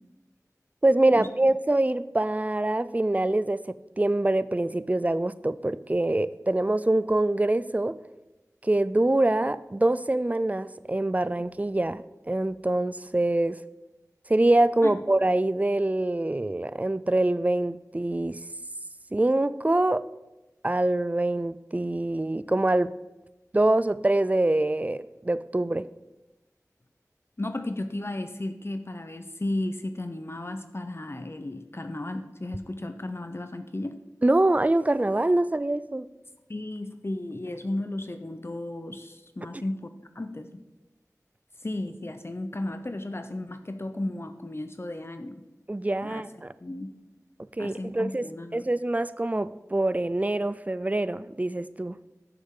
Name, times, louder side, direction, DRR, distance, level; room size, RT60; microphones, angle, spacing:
voice 1, 0.8-8.0 8.6-13.6 14.3-18.4 19.1-20.0 20.6-22.9 23.5-25.9 34.2-36.1 45.7-46.5 47.6-48.3 48.5-52.0, right 2 dB, 25° right, 16 dB, 0.3 m, -25 dB
voice 2, 27.4-34.0 36.5-40.6 41.6-45.4 46.0-46.2 46.6-46.9 47.6-48.7, left 1 dB, 40° left, 9 dB, 0.6 m, -34 dB
9.5 x 6.8 x 3.8 m, 1.0 s
wide cardioid pair, 45°, 6 cm